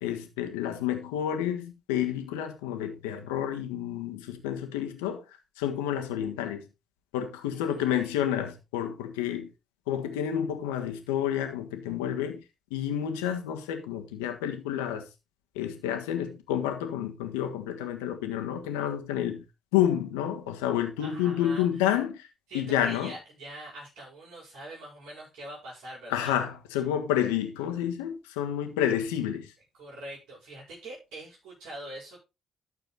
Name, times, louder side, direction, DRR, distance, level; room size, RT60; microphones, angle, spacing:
voice 1, 0.0-5.2 5.6-6.6 7.1-9.5 9.9-12.4 12.7-15.0 15.5-19.4 19.7-22.3 22.5-23.1 26.1-29.5, left 10 dB, 75° left, 1.5 m, -29 dB
voice 2, 7.5-8.1 21.0-21.8 22.5-26.3 29.8-32.2, right 1 dB, 65° right, 7.3 m, -44 dB
12.5 x 6.8 x 4.1 m
figure-of-eight pair, 40°, 0 cm